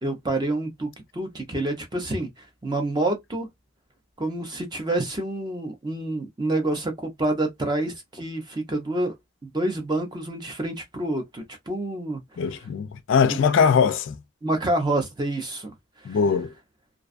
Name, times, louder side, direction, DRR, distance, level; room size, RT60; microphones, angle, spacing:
voice 1, 0.0-3.5 4.2-9.1 9.4-12.2 13.3-13.4 14.4-15.7 16.0-16.2, right 2 dB, 20° right, 0.5 m, -28 dB
voice 2, 12.4-14.2 16.0-16.5, left 6 dB, 55° left, 0.3 m, -21 dB
2.4 x 2.2 x 2.4 m
head